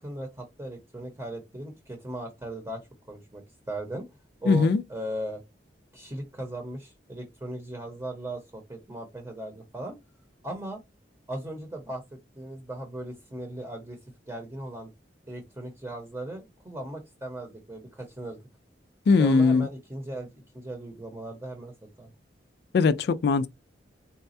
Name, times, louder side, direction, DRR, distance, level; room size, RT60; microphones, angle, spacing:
voice 1, 0.0-2.8 3.1-4.1 4.4-5.4 5.9-9.9 10.4-10.8 11.3-12.0 12.3-14.0 14.3-14.9 15.3-18.4 19.2-20.3 20.5-21.7 22.0-22.1, right 1 dB, 15° right, 0.8 m, -37 dB
voice 2, 4.5-4.8 19.1-19.7 22.7-23.5, left 4 dB, 65° left, 0.3 m, -20 dB
4.1 x 2.2 x 2.6 m
head